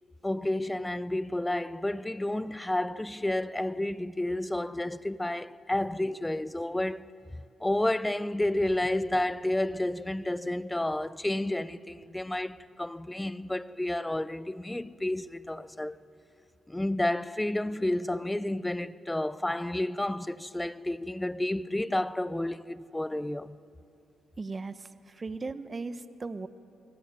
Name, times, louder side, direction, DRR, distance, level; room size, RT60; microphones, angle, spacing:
voice 1, 0.2-16.0 16.7-23.6, left 1 dB, 10° left, 0.7 m, -31 dB
sound 1, 8.4-13.0 13.8-13.9, left 3 dB, 35° left, 2.3 m, -60 dB
voice 2, 24.4-26.5, right 3 dB, 30° right, 1.1 m, -37 dB
28.5 x 21.5 x 9.1 m
cardioid pair, 90°, 0 cm